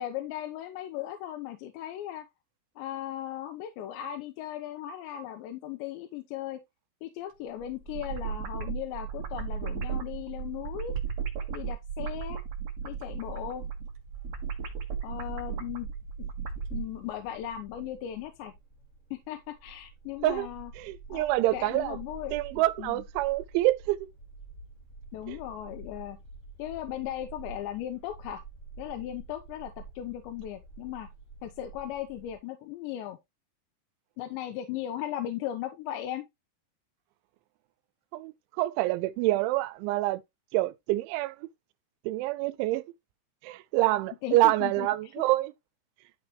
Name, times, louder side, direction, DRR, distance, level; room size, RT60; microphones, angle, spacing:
voice 1, 0.0-2.3 2.8-6.6 7.0-11.0 11.5-12.4 12.8-13.6 15.0-15.9 16.2-16.3 16.7-18.5 19.1-20.7 21.1-21.3 21.5-22.4 22.8-23.0 25.1-26.2 26.6-28.4 28.8-31.1 31.4-33.2 34.2-36.2 44.2-44.9, left 12 dB, 80° left, 3.1 m, -37 dB
sound 1, 7.6-16.8, right 7 dB, 60° right, 1.8 m, -35 dB
Bark, 13.2-32.4, right 3 dB, 25° left, 1.8 m, -48 dB
voice 2, 20.8-22.0 22.3-24.1 25.3-25.4 38.1-40.2 40.5-41.5 42.0-42.8 43.4-45.5, right 17 dB, 85° right, 3.0 m, -27 dB
12.5 x 4.5 x 3.1 m
omnidirectional pair, 5.3 m